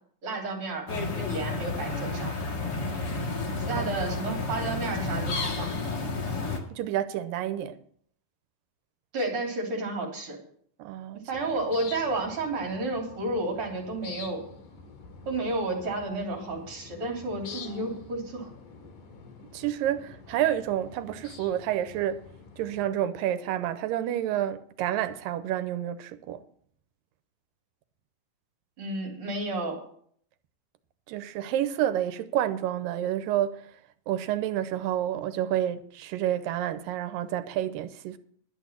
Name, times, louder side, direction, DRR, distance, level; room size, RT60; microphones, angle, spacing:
voice 1, 0.2-0.9 1.1-2.4 3.6-5.7 9.1-10.4 11.1-14.4 15.3-18.5 28.8-29.8, right 2 dB, 40° right, 3.9 m, -31 dB
sound 1, 0.9-6.6, left 3 dB, 40° left, 1.7 m, -31 dB
voice 2, 6.7-7.8 10.8-11.3 19.5-22.2 22.6-26.4 31.1-33.6 34.1-38.2, right 11 dB, 85° right, 2.4 m, -29 dB
sound 2, 11.3-22.9, left 5 dB, 65° left, 3.4 m, -47 dB
11.5 x 8.3 x 7.3 m
omnidirectional pair, 4.0 m